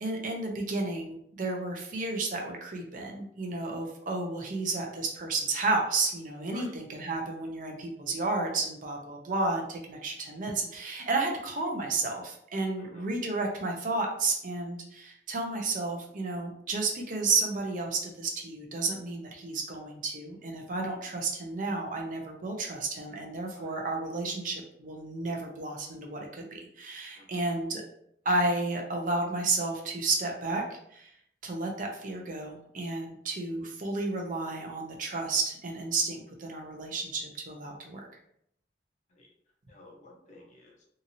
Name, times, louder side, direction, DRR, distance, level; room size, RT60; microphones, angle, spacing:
voice 1, 0.0-27.8 28.2-30.6 30.9-31.1 31.4-38.1, right 3 dB, 45° right, 1 dB, 0.5 m, -32 dB
voice 2, 39.7-40.9, left 2 dB, 40° left, -1 dB, 0.6 m, -52 dB
2.8 x 2.6 x 2.7 m, 0.71 s
head